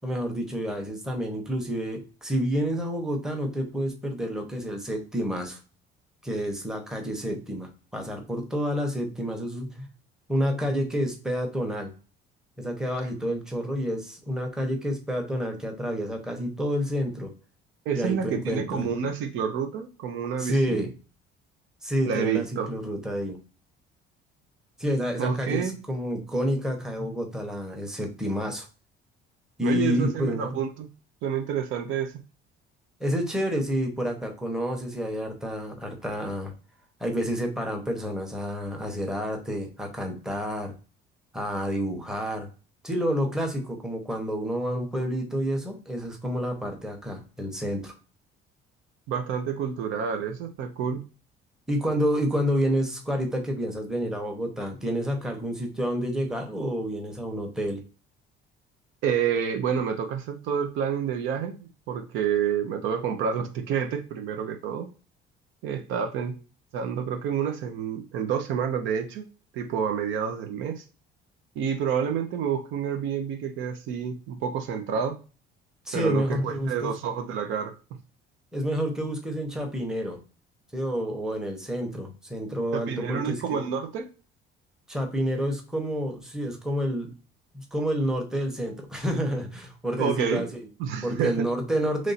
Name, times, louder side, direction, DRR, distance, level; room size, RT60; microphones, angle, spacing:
voice 1, 0.0-5.6 6.2-9.9 10.3-11.9 12.6-17.3 17.9-18.9 20.4-20.9 21.8-23.4 24.8-28.7 29.6-30.6 33.0-36.5 37.0-40.7 41.3-42.5 42.8-47.9 51.7-57.8 75.9-76.9 78.5-80.2 80.7-83.6 84.9-87.1 87.5-90.7 91.0-92.1, equal, 5° right, 2 dB, 0.8 m, -29 dB
voice 2, 17.9-20.9 22.0-22.7 25.2-25.8 29.6-30.9 31.2-32.1 49.1-51.0 59.0-64.9 65.6-66.4 66.7-69.3 69.5-70.8 71.6-75.2 75.9-77.7 82.7-84.1 90.0-90.4 90.8-91.5, right 7 dB, 75° right, 6 dB, 0.7 m, -29 dB
3.1 x 2.5 x 4.1 m, 0.35 s
cardioid pair, 135°, 20 cm